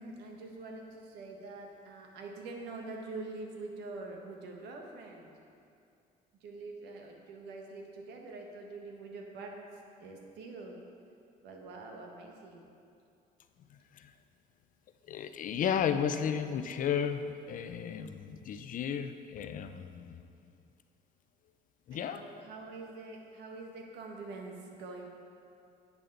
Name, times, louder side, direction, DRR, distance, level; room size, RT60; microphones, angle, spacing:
voice 1, 0.0-5.3 6.4-10.8 11.4-12.7 21.9-25.1, right 3 dB, 85° right, 1 dB, 1.4 m, -45 dB
voice 2, 13.7-14.2 15.1-20.5 21.9-22.2, left 8 dB, 50° left, 9 dB, 0.6 m, -34 dB
11.0 x 8.3 x 3.9 m, 2.6 s
cardioid pair, 110°, 17 cm